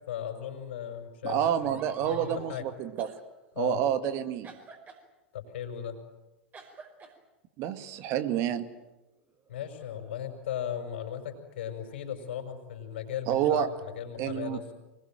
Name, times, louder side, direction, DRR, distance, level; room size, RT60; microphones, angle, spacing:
voice 1, 0.1-1.7 2.0-2.8 3.5-3.8 5.3-6.0 9.5-14.7, left 9 dB, 65° left, 5 dB, 5.8 m, -37 dB
voice 2, 1.2-3.1 3.6-4.5 7.6-8.6 13.3-13.7 14.2-14.6, right 10 dB, 45° right, 9 dB, 2.1 m, -28 dB
sound 1, 1.6-2.6 3.0-3.2 4.4-5.0 6.5-7.1 8.1-8.3 9.2-10.4, right 4 dB, 30° right, 5.3 m, -49 dB
24.5 x 20.5 x 9.2 m, 1.0 s
figure-of-eight pair, 90°, 6 cm